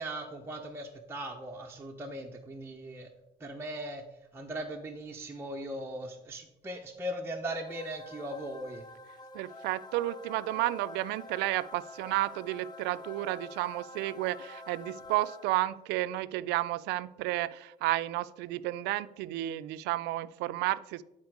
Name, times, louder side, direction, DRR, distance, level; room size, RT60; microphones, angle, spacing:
voice 1, 0.0-3.1 3.4-4.0 4.3-8.8, right 1 dB, 15° right, 0 dB, 0.8 m, -39 dB
sound 1, 7.7-15.9, left 2 dB, 25° left, 0.7 m, -47 dB
voice 2, 9.3-21.0, right 16 dB, 90° right, 15 dB, 0.4 m, -32 dB
9.5 x 4.3 x 4.7 m, 0.89 s
cardioid pair, 110°, 17 cm